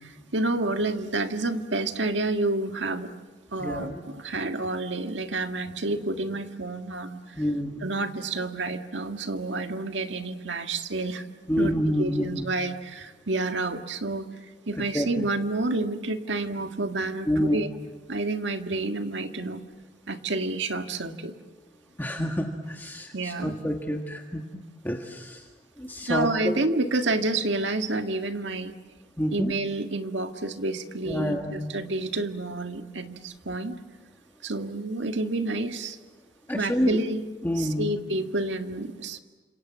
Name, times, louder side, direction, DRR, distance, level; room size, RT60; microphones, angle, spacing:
voice 1, 0.0-3.1 3.5-7.2 7.8-11.3 11.6-11.7 12.0-14.3 14.7-17.7 18.1-19.6 20.1-21.4 23.1-23.6 26.0-28.7 29.3-33.8 34.4-36.0 36.5-37.3 37.6-39.2, right 2 dB, 80° right, 6 dB, 1.8 m, -29 dB
voice 2, 3.6-4.0 7.4-7.9 11.5-12.4 14.7-15.3 17.3-17.6 22.0-24.4 24.8-25.5 25.8-26.6 29.2-29.5 31.0-31.7 36.5-37.0 37.4-37.9, equal, 10° left, 2 dB, 1.6 m, -28 dB
29.5 x 27.0 x 7.5 m, 1.3 s
head